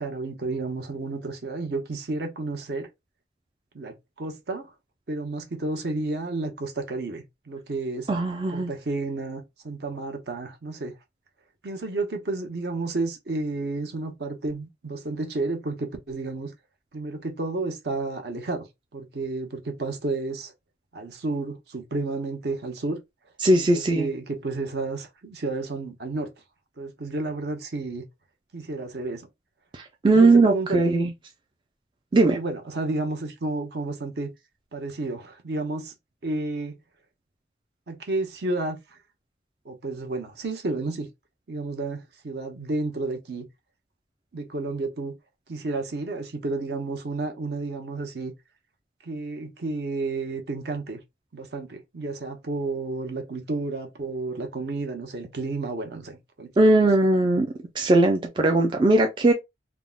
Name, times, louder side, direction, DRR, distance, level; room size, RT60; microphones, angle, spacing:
voice 1, 0.0-2.9 3.7-4.7 5.1-8.1 8.5-10.9 11.6-16.5 16.9-18.7 18.9-20.5 20.9-23.0 23.5-26.3 26.8-28.0 28.5-29.3 30.1-31.0 32.2-34.3 34.7-35.9 36.2-36.8 37.9-39.0 39.6-41.1 41.5-43.4 44.3-45.1 45.5-48.3 49.0-51.0 51.3-56.6, right 3 dB, 60° right, 0.7 m, -31 dB
voice 2, 8.1-8.7 23.4-24.1 29.7-31.1 32.1-32.4 56.6-57.5 57.8-59.3, right 2 dB, 25° right, 0.3 m, -19 dB
3.5 x 2.0 x 2.2 m
head